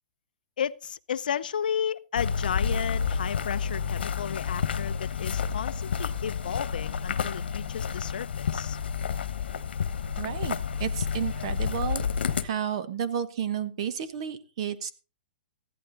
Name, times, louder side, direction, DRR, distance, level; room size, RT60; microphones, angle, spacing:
voice 1, 0.6-8.8, left 8 dB, 60° left, 0.6 m, -33 dB
sound 1, 2.2-12.4, left 6 dB, 80° left, 1.2 m, -30 dB
voice 2, 10.2-12.0 12.4-14.9, right 8 dB, 35° right, 1.1 m, -32 dB
15.0 x 11.5 x 4.0 m
hypercardioid pair, 180°, 5 cm